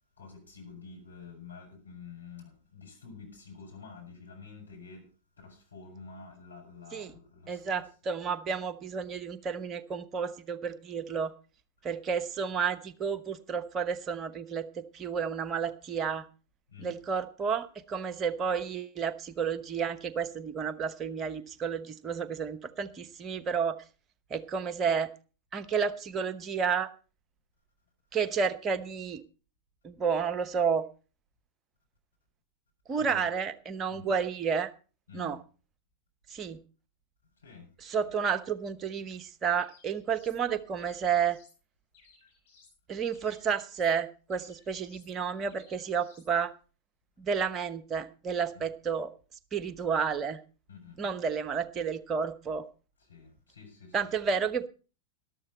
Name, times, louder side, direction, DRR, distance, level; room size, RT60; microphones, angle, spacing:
voice 1, 0.2-7.9 16.7-17.0 33.0-33.2 33.9-34.1 35.1-35.4 37.4-37.7 48.5-48.6 50.7-51.2 53.0-54.1, left 5 dB, 80° left, 0 dB, 6.2 m, -49 dB
voice 2, 7.5-11.3 11.8-16.2 16.8-23.8 24.3-25.1 25.5-26.9 28.1-29.2 29.8-30.9 32.9-34.7 35.1-35.4 36.3-36.6 37.8-41.4 42.9-46.5 47.2-49.1 49.5-50.4 51.0-52.7 53.9-54.7, right 6 dB, 25° right, 10 dB, 0.9 m, -31 dB
sound 1, 39.6-40.4 40.8-41.6 41.9-42.8 43.1-44.0 44.3-45.1 45.5-46.3, left 5 dB, 50° left, 7.1 m, -61 dB
13.5 x 12.0 x 4.1 m, 0.36 s
figure-of-eight pair, 90°, 0 cm